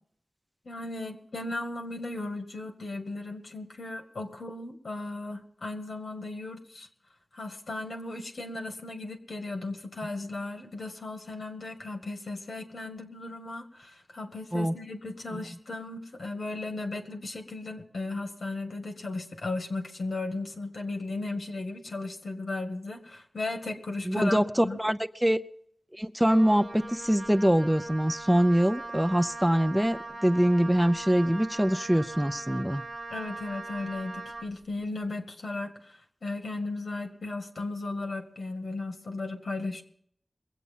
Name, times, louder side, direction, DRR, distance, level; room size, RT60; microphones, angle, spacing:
voice 1, 0.6-6.9 7.3-24.8 33.1-39.8, left 2 dB, 85° left, 4 dB, 2.0 m, -36 dB
voice 2, 24.0-25.4 25.9-32.8, equal, 5° right, 10 dB, 0.6 m, -24 dB
Wind instrument woodwind instrument, 26.3-34.5, right 3 dB, 40° right, 1.2 m, -40 dB
22.0 x 8.2 x 5.5 m, 0.65 s
cardioid pair, 45°, 0 cm